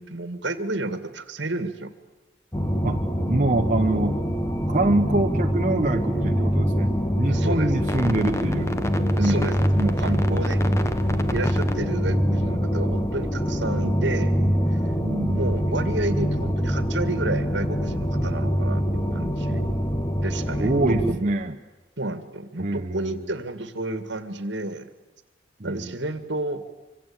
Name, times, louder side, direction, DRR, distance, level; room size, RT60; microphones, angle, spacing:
voice 1, 0.0-1.9 7.3-7.7 9.2-10.6 11.3-14.4 14.7-14.8 15.3-19.7 20.2-21.3 22.0-24.9 25.6-26.6, right 2 dB, 70° right, 11 dB, 2.1 m, -31 dB
sound 1, 2.5-21.1, equal, 15° left, 1.2 m, -24 dB
voice 2, 3.3-4.3 4.7-8.8 9.2-9.4 9.8-10.4 15.0-15.9 20.6-21.6 22.6-23.2 25.6-25.8, right 2 dB, 40° right, 3 dB, 1.0 m, -25 dB
25.0 x 25.0 x 8.8 m, 1.1 s
head